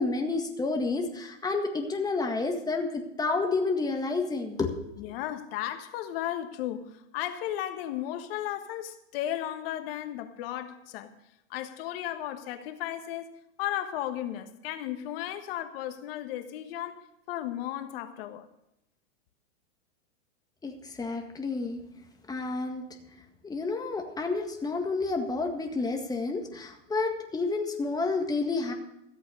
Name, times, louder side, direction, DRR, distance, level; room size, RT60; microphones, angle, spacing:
voice 1, 0.0-4.7 5.0-5.1 20.6-21.8 22.3-22.9 23.4-28.7, left 3 dB, 10° left, 1.7 m, -30 dB
voice 2, 5.0-11.1 11.5-18.5, left 12 dB, 50° left, 1.4 m, -35 dB
14.5 x 8.4 x 6.5 m
hypercardioid pair, 125°, 36 cm